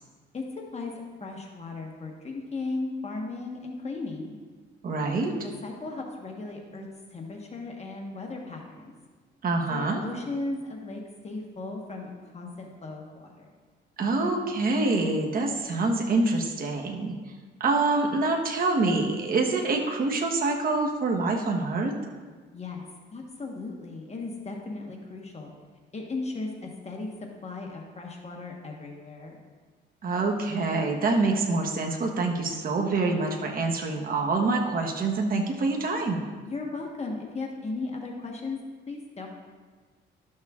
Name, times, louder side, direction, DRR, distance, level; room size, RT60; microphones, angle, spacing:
voice 1, 0.3-4.3 5.4-8.9 9.7-13.5 22.5-22.8 23.1-25.5 25.9-29.4 36.4-38.6 38.9-39.3, left 3 dB, 35° left, 1 dB, 1.2 m, -36 dB
voice 2, 4.8-5.3 9.4-10.0 14.0-17.1 17.6-21.9 30.0-36.2, right 3 dB, 45° right, 1 dB, 1.1 m, -26 dB
12.5 x 6.4 x 2.4 m, 1.4 s
cardioid pair, 90°, 20 cm